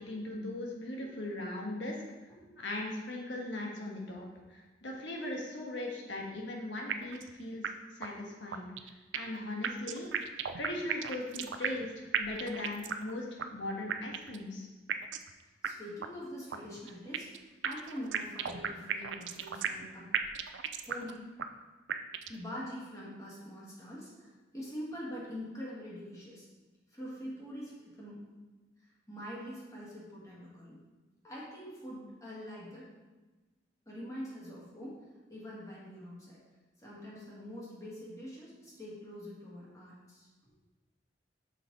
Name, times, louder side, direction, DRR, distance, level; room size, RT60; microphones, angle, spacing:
voice 1, 0.0-2.0 2.6-8.7 9.1-10.1 10.6-14.7, left 1 dB, 85° left, -1 dB, 1.4 m, -39 dB
sound 1, 6.9-7.3 7.6-7.7 8.0-8.1 8.5-9.4 9.6-11.9 12.1-13.1 13.4-13.5 13.9-14.4 14.9-15.3 15.6-15.7 16.0-16.1 16.5-17.4 17.6-19.9 20.1-21.1 21.4-21.5 21.9-22.4, right 8 dB, 85° right, 0.4 m, -34 dB
voice 2, 15.6-20.1 20.9-21.2 22.3-26.5 26.9-28.2 29.1-30.8 31.2-32.9 33.9-35.0 35.3-36.4 36.8-40.3, equal, 20° left, -7 dB, 2.0 m, -44 dB
6.1 x 5.6 x 4.0 m, 1.2 s
head